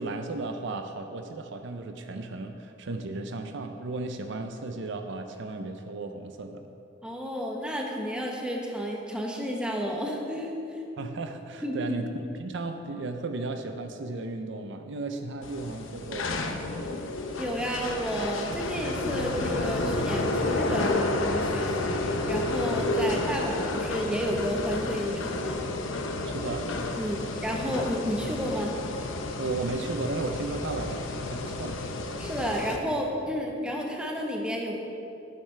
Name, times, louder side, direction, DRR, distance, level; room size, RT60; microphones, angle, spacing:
voice 1, 0.0-6.7 11.0-16.9 26.2-26.7 29.4-31.9, right 3 dB, 65° right, 6 dB, 0.6 m, -35 dB
voice 2, 7.0-10.5 11.6-11.9 17.4-25.6 27.0-28.8 32.2-34.7, equal, 5° right, -1 dB, 1.0 m, -31 dB
sound 1, 15.4-32.8, left 2 dB, 75° left, 0.7 m, -31 dB
11.0 x 8.9 x 3.3 m, 2.8 s
head